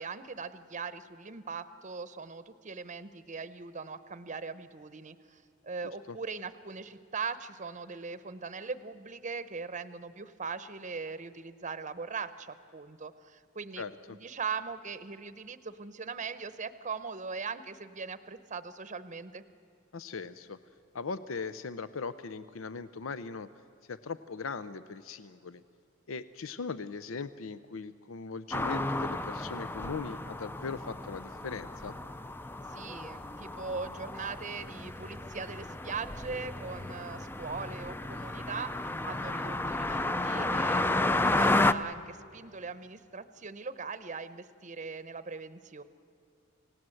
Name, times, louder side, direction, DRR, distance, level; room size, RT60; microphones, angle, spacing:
voice 1, 0.0-13.8 14.1-19.4 32.7-38.7 39.0-45.8, right 5 dB, 40° right, 13 dB, 0.8 m, -40 dB
voice 2, 13.8-14.2 19.9-20.6 20.9-23.5 23.9-25.6 26.1-32.0, left 4 dB, 85° left, 13 dB, 0.6 m, -39 dB
sound 1, 28.5-41.7, left 2 dB, 10° left, 0.5 m, -32 dB
28.5 x 17.5 x 7.8 m, 2.5 s
head